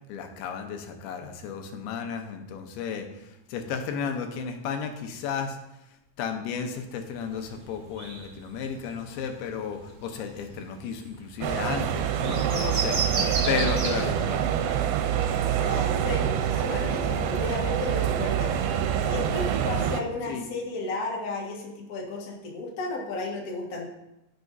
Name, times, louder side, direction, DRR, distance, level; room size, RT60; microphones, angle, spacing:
voice 1, 0.1-5.6 6.2-14.7 20.3-20.5, left 6 dB, 85° left, 5 dB, 2.9 m, -33 dB
sound 1, 7.1-16.8, right 4 dB, 50° right, 1.5 m, -37 dB
sound 2, 11.4-20.0, right 9 dB, 85° right, 2.6 m, -26 dB
voice 2, 15.5-18.5 19.0-23.9, left 3 dB, 50° left, -2 dB, 1.0 m, -34 dB
16.0 x 6.2 x 2.7 m, 0.91 s
omnidirectional pair, 4.4 m